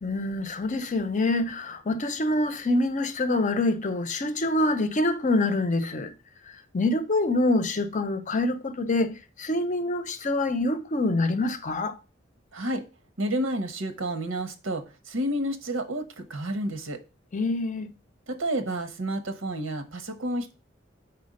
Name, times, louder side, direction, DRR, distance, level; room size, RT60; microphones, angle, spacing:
voice 1, 0.0-6.1 6.7-12.0 17.3-17.9, left 2 dB, 40° left, 0.6 m, -26 dB
voice 2, 12.5-12.8 13.2-17.0 18.3-20.5, right 1 dB, 90° right, 1.0 m, -30 dB
4.4 x 4.3 x 5.2 m
head